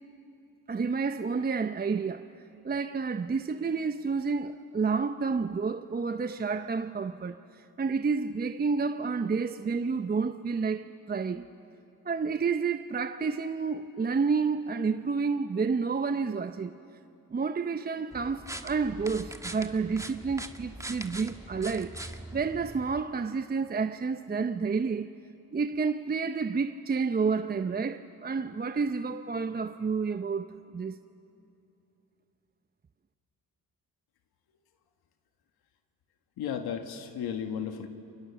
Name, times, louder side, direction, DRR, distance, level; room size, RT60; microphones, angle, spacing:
voice 1, 0.7-2.3 2.6-11.5 12.0-16.7 17.3-25.1 25.5-31.0, right 5 dB, 25° right, 0.7 m, -30 dB
sound 1, 18.1-23.0, right 1 dB, 10° right, 1.4 m, -42 dB
voice 2, 36.4-37.9, left 8 dB, 80° left, 1.7 m, -34 dB
30.0 x 24.0 x 7.2 m
cardioid pair, 75°, 37 cm